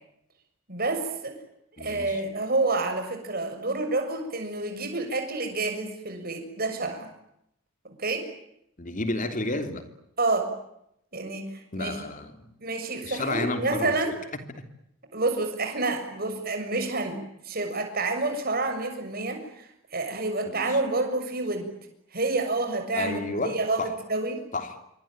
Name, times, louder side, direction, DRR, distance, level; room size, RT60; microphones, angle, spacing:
voice 1, 0.7-1.4 1.8-7.1 7.8-8.3 10.2-10.5 11.1-12.0 12.6-14.1 15.1-21.7 22.1-24.4, right 3 dB, 45° right, 6.9 m, -29 dB
voice 2, 1.8-2.2 8.8-9.9 11.7-12.3 13.0-13.9 20.5-20.7 23.0-23.9 24.5-24.8, left 2 dB, 40° left, 3.2 m, -31 dB
27.5 x 24.0 x 9.0 m
head